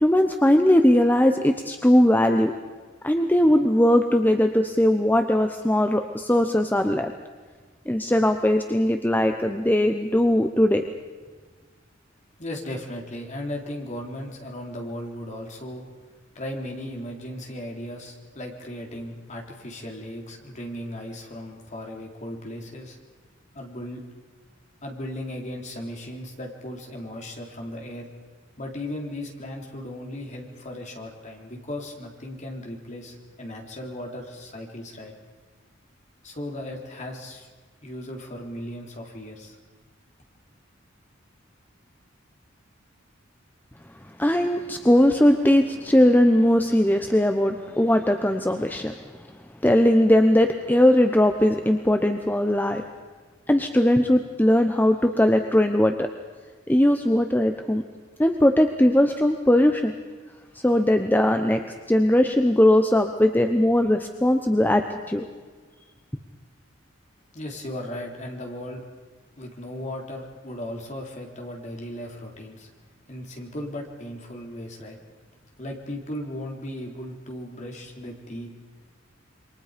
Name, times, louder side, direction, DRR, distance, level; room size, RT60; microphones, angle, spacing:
voice 1, 0.0-2.5 3.0-7.1 7.9-10.8 44.2-48.9 49.6-52.8 53.5-56.1 56.7-57.8 58.2-59.9 60.5-61.6 61.9-64.8 65.1-65.2, left 1 dB, 10° left, 6 dB, 0.9 m, -19 dB
voice 2, 12.4-15.9 16.4-23.0 23.5-24.0 24.8-28.1 28.6-35.1 36.2-37.5 37.8-39.6 67.3-68.8 69.4-72.7 73.1-75.0 75.6-78.5, left 1 dB, 40° left, 1 dB, 3.7 m, -36 dB
27.5 x 24.0 x 5.2 m, 1.4 s
head